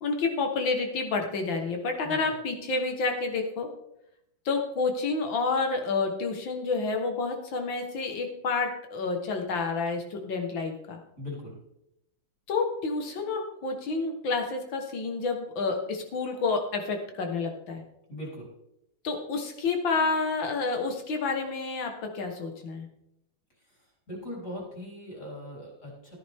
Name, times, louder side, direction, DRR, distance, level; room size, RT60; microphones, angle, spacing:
voice 1, 0.0-3.7 4.5-11.0 12.5-17.8 19.0-22.9, left 4 dB, 70° left, 4 dB, 2.2 m, -29 dB
voice 2, 11.2-11.6 18.1-18.5 24.1-26.2, left 1 dB, 40° left, -3 dB, 4.3 m, -39 dB
13.5 x 10.0 x 3.6 m, 0.83 s
omnidirectional pair, 2.2 m